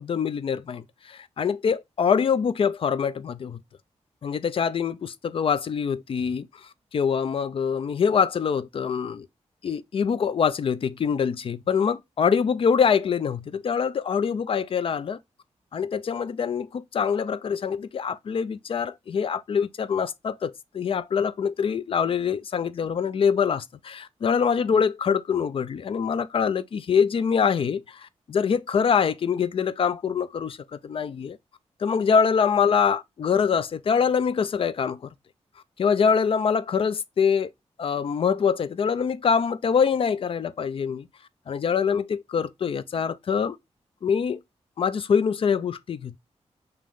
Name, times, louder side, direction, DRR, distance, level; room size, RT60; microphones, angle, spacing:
voice 1, 0.0-3.6 4.2-6.5 6.9-9.3 9.6-15.2 15.7-30.6 30.8-31.4 31.8-35.1 35.8-37.5 37.8-41.1 41.5-43.6 44.0-44.4 44.8-46.1, left 6 dB, 50° left, 0.4 m, -24 dB
5.2 x 2.9 x 3.6 m
wide cardioid pair, 145°, 12 cm